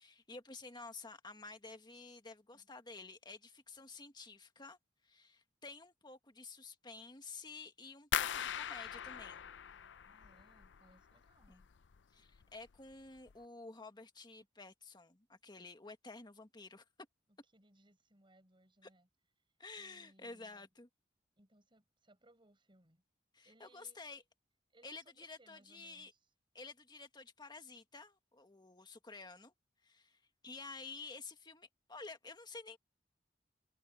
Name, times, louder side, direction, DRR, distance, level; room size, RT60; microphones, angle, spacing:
voice 1, 0.0-4.8 5.0-9.5 11.5-11.6 12.1-16.8 18.8-18.9 19.6-20.9 23.3-24.2 24.8-26.1 26.5-29.5 29.8-32.8, left 3 dB, 25° left, 1.7 m, -51 dB
sound 1, 8.1-11.0 11.3-12.0 12.3-12.8 13.2-13.3, left 9 dB, 85° left, 0.5 m, -40 dB
voice 2, 10.1-11.7 17.3-19.1 19.7-20.7 21.4-23.0 23.4-24.0 24.7-26.3, right 1 dB, 30° right, 7.9 m, -67 dB
head